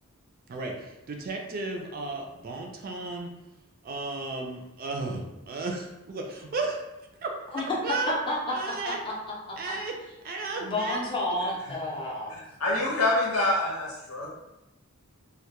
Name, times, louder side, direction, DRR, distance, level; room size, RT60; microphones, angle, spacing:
voice 1, 0.5-3.3 3.8-6.8 7.2-7.3 7.8-8.1 8.5-9.0 9.6-9.9 10.2-11.0, right 3 dB, 40° right, 2 dB, 0.3 m, -34 dB
voice 2, 8.1-8.5 8.8-9.1 9.5-9.6 10.6-12.4, left 1 dB, 20° left, -4 dB, 0.5 m, -30 dB
voice 3, 12.6-14.3, left 2 dB, 90° left, -3 dB, 0.8 m, -26 dB
2.2 x 2.1 x 2.8 m, 0.92 s
head